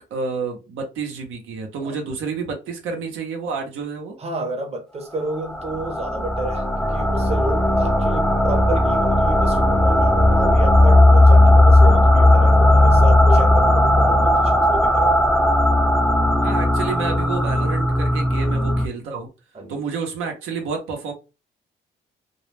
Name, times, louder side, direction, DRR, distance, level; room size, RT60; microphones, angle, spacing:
voice 1, 0.1-4.2 16.4-19.3 19.7-21.1, right 5 dB, 85° right, 0.8 m, -29 dB
voice 2, 4.2-15.3 19.5-19.8, right 1 dB, 30° right, 0.7 m, -31 dB
Eerie Prelude, 5.3-18.9, left 1 dB, 5° left, 0.4 m, -16 dB
2.2 x 2.0 x 3.2 m
cardioid pair, 90°, 20 cm